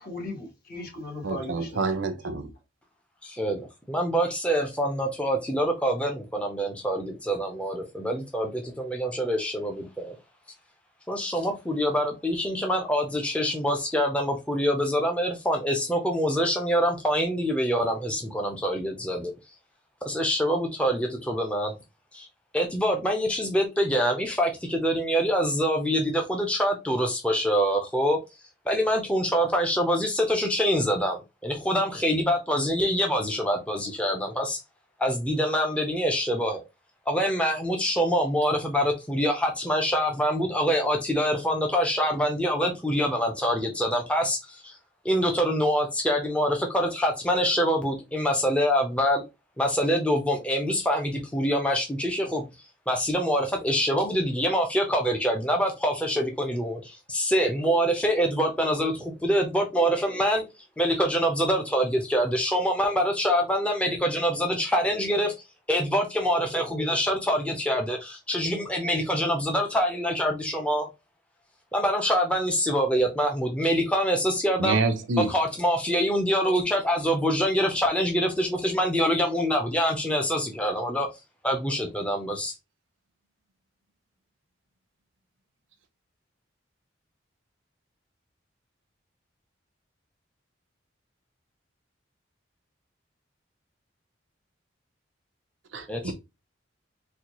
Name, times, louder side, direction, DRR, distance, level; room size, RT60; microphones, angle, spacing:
voice 1, 0.0-2.3, left 2 dB, 50° left, 1.4 m, -38 dB
voice 2, 1.2-2.5 74.6-75.3 95.7-96.1, right 3 dB, 80° right, 0.6 m, -27 dB
voice 3, 3.2-10.2 11.1-19.3 20.0-21.8 22.1-22.3 22.5-28.2 28.7-34.6 35.0-36.6 37.1-44.8 45.0-49.2 49.6-52.4 52.9-60.4 60.8-65.3 65.7-70.9 71.7-74.8 75.2-81.1 81.4-82.5 95.9-96.1, equal, 5° left, 0.5 m, -25 dB
4.2 x 2.2 x 2.9 m
head